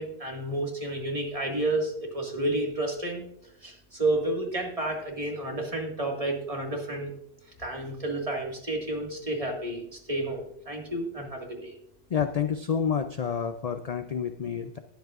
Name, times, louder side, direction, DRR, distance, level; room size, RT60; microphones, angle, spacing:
voice 1, 0.0-3.2 3.6-7.1 7.6-11.7, right 1 dB, 30° right, 1 dB, 2.0 m, -31 dB
voice 2, 12.1-14.8, left 7 dB, 50° left, 8 dB, 0.5 m, -29 dB
20.0 x 8.1 x 2.5 m, 0.70 s
omnidirectional pair, 1.2 m